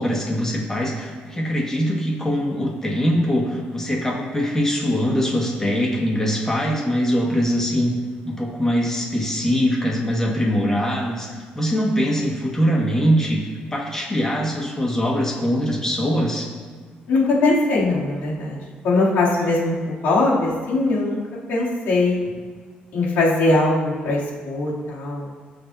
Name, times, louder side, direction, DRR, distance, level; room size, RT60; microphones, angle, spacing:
voice 1, 0.0-7.9 8.2-16.5, equal, 15° left, -2 dB, 1.9 m, -22 dB
voice 2, 17.1-21.2 21.5-22.2 22.9-25.3, left 2 dB, 85° left, -7 dB, 3.2 m, -21 dB
18.0 x 6.8 x 2.9 m, 1.5 s
cardioid pair, 125°, 3 cm